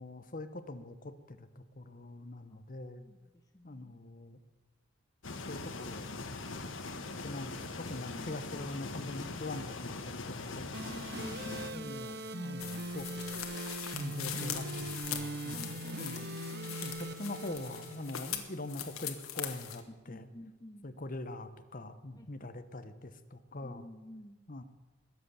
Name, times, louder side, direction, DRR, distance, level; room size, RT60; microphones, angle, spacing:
voice 1, 0.0-3.0 3.6-4.4 5.5-6.1 7.2-11.0 11.7-13.3 13.9-16.3 16.8-20.3 20.8-23.9 24.5-24.6, left 2 dB, 40° left, 11 dB, 1.0 m, -43 dB
voice 2, 3.0-4.1 8.0-8.7 10.9-12.6 15.5-16.8 19.9-20.9 22.2-22.5 23.6-24.4, left 1 dB, 20° left, 5 dB, 0.7 m, -51 dB
sound 1, 5.2-11.7, left 3 dB, 65° left, 1.4 m, -41 dB
sound 2, 10.7-18.7, right 1 dB, 50° right, 1.0 m, -41 dB
sound 3, 12.6-19.8, left 10 dB, 85° left, 1.6 m, -42 dB
21.0 x 8.0 x 7.0 m, 1.2 s
head